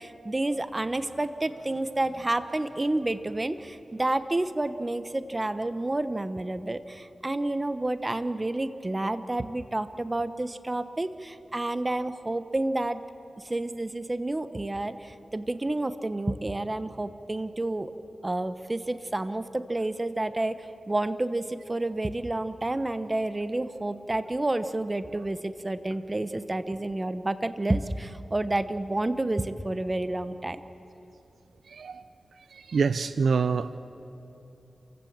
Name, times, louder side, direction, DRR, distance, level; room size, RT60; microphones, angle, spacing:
voice 1, 0.0-13.0 13.4-17.9 18.2-30.6, right 2 dB, 25° right, 11 dB, 1.0 m, -30 dB
voice 2, 31.7-32.0 32.5-33.8, right 5 dB, 85° right, 13 dB, 0.5 m, -26 dB
28.0 x 16.0 x 7.4 m, 2.9 s
cardioid pair, 70°, 0 cm